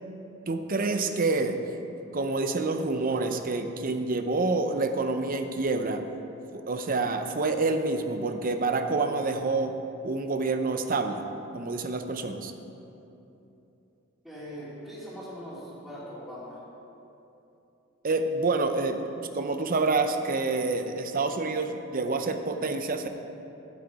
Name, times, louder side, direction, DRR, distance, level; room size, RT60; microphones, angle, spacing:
voice 1, 0.5-1.6 2.1-6.0 6.5-9.7 10.0-11.3 11.5-12.5 18.0-19.0 19.3-23.1, right 3 dB, 45° right, 7 dB, 0.6 m, -27 dB
voice 2, 14.2-16.6, equal, ahead, -9 dB, 2.5 m, -41 dB
11.5 x 8.3 x 4.7 m, 2.9 s
head